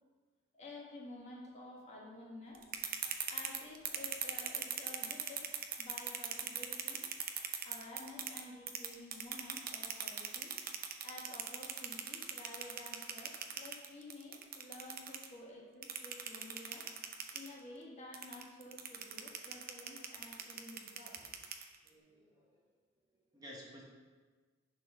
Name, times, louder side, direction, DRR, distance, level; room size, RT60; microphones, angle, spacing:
voice 1, 0.5-2.7 3.3-7.0 7.6-10.6 11.0-21.3, left 2 dB, 30° left, -3 dB, 1.6 m, -51 dB
sound 1, 2.5-8.4 8.7-15.3 15.8-17.5 18.1-21.9, right 8 dB, 45° right, 0.7 m, -39 dB
voice 2, 21.8-22.6 23.3-23.8, equal, 20° right, -3 dB, 1.2 m, -53 dB
10.5 x 4.4 x 5.5 m, 1.4 s
head